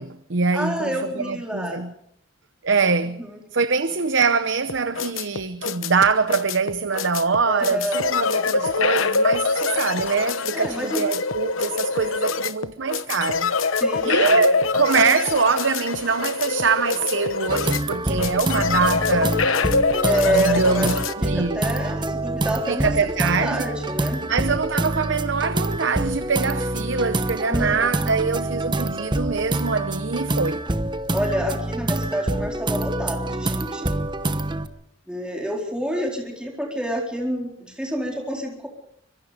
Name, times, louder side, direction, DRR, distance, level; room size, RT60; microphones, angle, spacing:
voice 1, 0.0-1.9 2.6-3.3 3.5-13.8 14.0-19.4 20.3-21.6 22.7-23.7 24.3-30.6, right 5 dB, 65° right, 0.8 m, -23 dB
voice 2, 0.5-1.8 3.2-3.4 7.5-8.2 10.5-11.0 13.8-14.5 20.0-20.9 21.2-24.3 27.4-28.1 31.1-33.9 35.1-38.7, equal, 5° right, 4.1 m, -28 dB
sound 1, 4.7-21.1, left 4 dB, 80° left, 1.1 m, -24 dB
sound 2, 17.5-34.7, right 1 dB, 20° right, 1.0 m, -26 dB
25.0 x 23.0 x 5.1 m
head